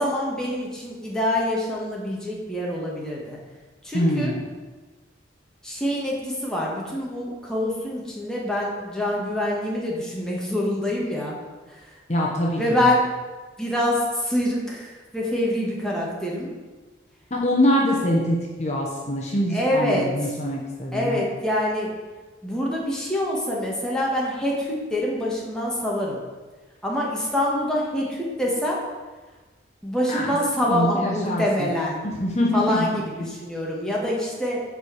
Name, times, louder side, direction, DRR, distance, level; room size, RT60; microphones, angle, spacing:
voice 1, 0.0-3.4 3.8-4.4 5.6-11.3 11.7-11.9 12.6-13.0 13.6-16.5 19.5-20.4 20.9-21.9 22.4-26.2 26.8-28.8 29.8-32.0 32.5-34.6, left 1 dB, 5° left, -4 dB, 1.6 m, -25 dB
voice 2, 3.9-4.4 12.1-12.9 17.3-21.2 30.1-30.4 30.7-31.7 32.2-32.9, left 1 dB, 40° left, -2 dB, 1.0 m, -24 dB
7.1 x 4.9 x 7.0 m, 1.3 s
head